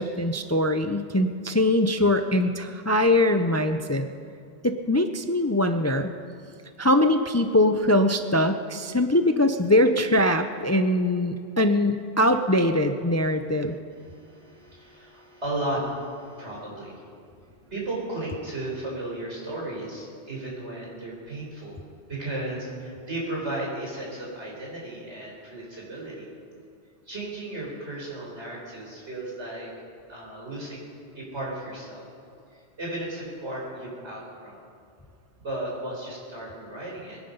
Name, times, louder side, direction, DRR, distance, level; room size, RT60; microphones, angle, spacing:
voice 1, 0.0-4.1 4.6-6.1 6.8-13.8, left 1 dB, 25° left, 7 dB, 0.4 m, -22 dB
voice 2, 13.6-17.0 17.5-21.8 22.1-26.3 27.1-29.7 30.1-30.8 31.1-32.1 32.5-34.6 35.4-37.2, right 1 dB, 85° right, -3 dB, 4.8 m, -35 dB
24.0 x 10.5 x 5.4 m, 2.3 s
omnidirectional pair, 1.1 m